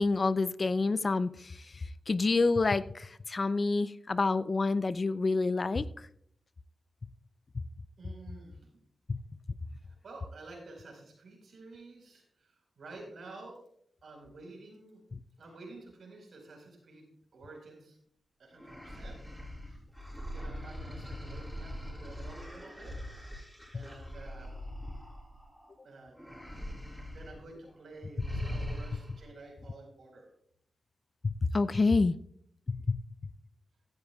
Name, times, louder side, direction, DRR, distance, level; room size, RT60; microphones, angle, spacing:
voice 1, 0.0-5.8 7.6-7.7 9.1-9.2 31.2-32.2 32.7-33.0, left 3 dB, 45° left, 0.4 m, -28 dB
voice 2, 8.0-8.7 9.8-13.6 14.0-15.0 15.4-18.0 18.4-19.2 19.7-19.8 20.3-22.9 23.7-24.5 25.8-26.2 27.0-30.3, right 2 dB, 70° right, 4.5 m, -50 dB
sound 1, 18.5-25.7 26.1-27.4 27.6-27.8 28.2-29.3, left 1 dB, ahead, 5.0 m, -41 dB
15.5 x 11.0 x 2.4 m
cardioid pair, 55°, 0 cm